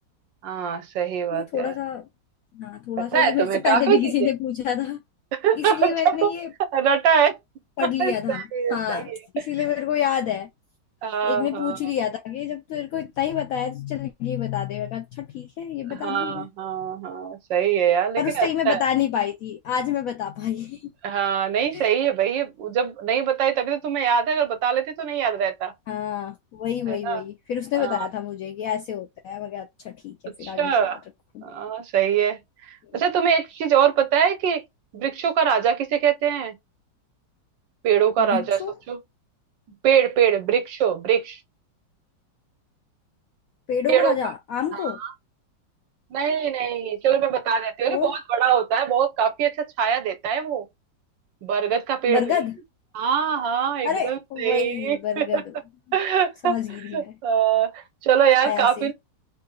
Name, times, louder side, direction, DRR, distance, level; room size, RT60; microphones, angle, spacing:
voice 1, 0.4-1.7 3.0-4.1 5.3-6.3 6.7-7.4 7.8-9.5 11.0-11.8 15.9-18.8 21.0-25.7 26.9-27.2 27.7-28.1 30.4-31.0 31.4-32.4 32.7-34.6 34.9-36.6 37.8-38.6 38.9-39.0 39.8-41.4 43.9-44.1 44.7-45.1 46.1-50.7 51.4-52.4 52.9-55.4 55.9-56.6 56.9-58.9, right 8 dB, 80° right, 1.6 m, -23 dB
voice 2, 1.3-2.1 2.5-5.0 5.6-6.5 7.8-8.4 8.7-10.5 11.2-16.5 18.2-20.9 21.7-21.9 25.9-31.0 31.3-31.4 32.9-33.0 38.2-38.7 43.7-45.0 47.9-48.1 52.1-52.6 53.8-55.5 56.4-57.2 58.4-58.9, left 9 dB, 75° left, 0.8 m, -28 dB
3.5 x 2.6 x 2.3 m
omnidirectional pair, 2.0 m